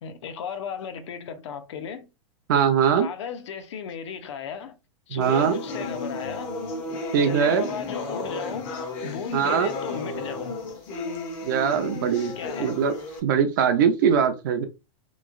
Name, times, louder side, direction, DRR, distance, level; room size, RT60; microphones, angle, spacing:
voice 1, 0.0-2.1 3.0-4.8 5.1-6.5 7.2-8.7 9.0-10.6 12.4-12.7, left 7 dB, 65° left, 0.6 m, -35 dB
voice 2, 2.5-3.1 5.1-5.6 7.1-7.7 9.3-9.7 11.4-12.3 12.6-12.9 13.2-14.6, right 7 dB, 40° right, 0.4 m, -21 dB
sound 1, 5.2-13.2, left 3 dB, 25° left, 0.5 m, -33 dB
3.0 x 2.7 x 2.4 m
supercardioid pair, 175°, 16 cm